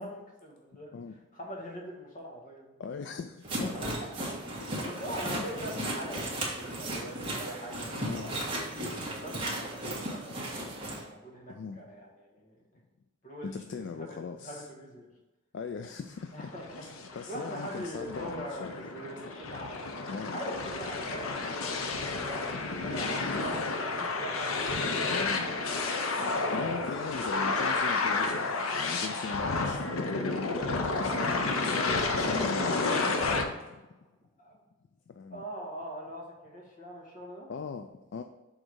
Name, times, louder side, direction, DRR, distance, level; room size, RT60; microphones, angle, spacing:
voice 1, 0.0-1.0 1.3-2.7 3.6-4.1 4.5-8.3 9.0-12.6 13.2-15.1 16.3-16.9 17.3-19.9 20.3-22.4 22.8-25.4 34.4-34.6 35.3-37.5, right 1 dB, 40° left, 1.5 m, -42 dB
voice 2, 2.8-4.0 4.6-4.9 5.2-5.5 5.8-5.9 8.0-8.3 11.5-11.8 13.4-14.7 15.5-18.7 20.1-20.4 25.1-25.6 26.5-30.7 31.0-33.4 35.1-35.4 37.5-38.2, left 5 dB, 55° left, 0.3 m, -39 dB
sound 1, 3.4-11.0, right 1 dB, 25° right, 1.5 m, -35 dB
sound 2, 16.6-33.4, left 3 dB, 85° left, 0.7 m, -31 dB
6.3 x 3.9 x 4.6 m
head